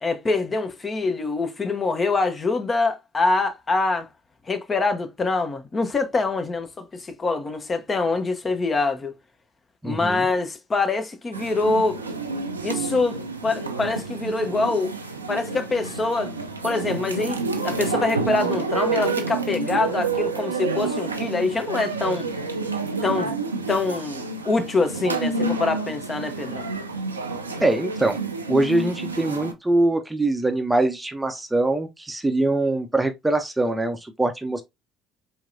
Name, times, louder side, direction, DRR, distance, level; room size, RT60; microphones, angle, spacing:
voice 1, 0.0-4.1 4.5-9.1 9.8-12.0 12.6-14.9 15.3-16.3 16.6-22.3 23.0-23.4 23.7-26.7, left 3 dB, 30° left, 0.8 m, -25 dB
voice 2, 9.8-10.3 27.6-28.2 28.5-34.6, right 2 dB, 10° right, 0.6 m, -23 dB
sound 1, 11.3-29.5, right 3 dB, 85° right, 0.4 m, -29 dB
4.5 x 3.2 x 2.6 m
figure-of-eight pair, 55°, 0 cm